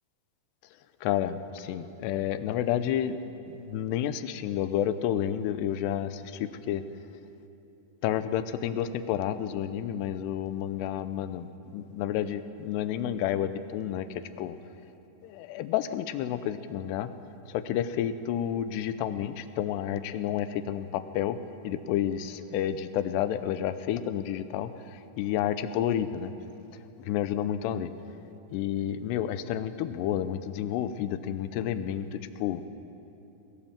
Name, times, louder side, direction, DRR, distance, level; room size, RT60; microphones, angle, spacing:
voice 1, 1.0-3.2 3.5-6.8 8.0-14.6 15.2-17.1 17.5-21.4 21.6-26.3 27.1-27.9 28.5-32.6, left 10 dB, 85° left, 12 dB, 2.9 m, -30 dB
22.0 x 19.5 x 7.4 m, 2.9 s
omnidirectional pair, 4.8 m